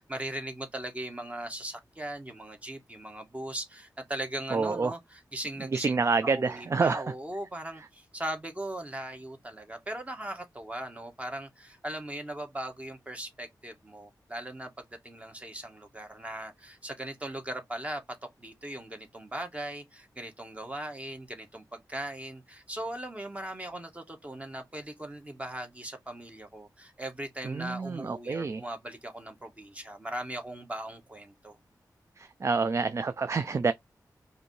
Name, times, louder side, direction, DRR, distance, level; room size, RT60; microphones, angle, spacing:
voice 1, 0.0-18.0 18.4-31.6, right 1 dB, 20° right, 1.2 m, -39 dB
voice 2, 4.5-4.9 5.6-7.0 27.4-28.6 32.2-33.7, right 4 dB, 45° right, 0.3 m, -28 dB
5.0 x 2.7 x 3.1 m
wide cardioid pair, 85°, 7 cm